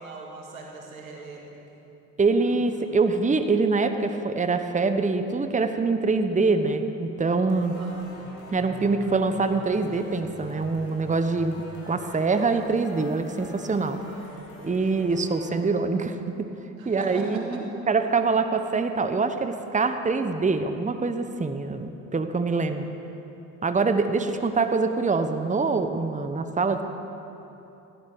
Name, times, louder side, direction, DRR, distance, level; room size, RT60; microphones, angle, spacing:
voice 1, 0.0-1.8 2.4-2.6 7.7-7.9 16.8-17.4, right 3 dB, 90° right, 0 dB, 1.9 m, -40 dB
voice 2, 2.2-7.7 8.5-14.0 14.6-16.5 16.8-22.9 23.6-26.8, right 4 dB, 20° right, 8 dB, 1.1 m, -24 dB
sound 1, 7.5-15.5, left 2 dB, 85° left, 2.9 m, -44 dB
17.0 x 11.5 x 6.2 m, 2.9 s
hypercardioid pair, 55°, 40 cm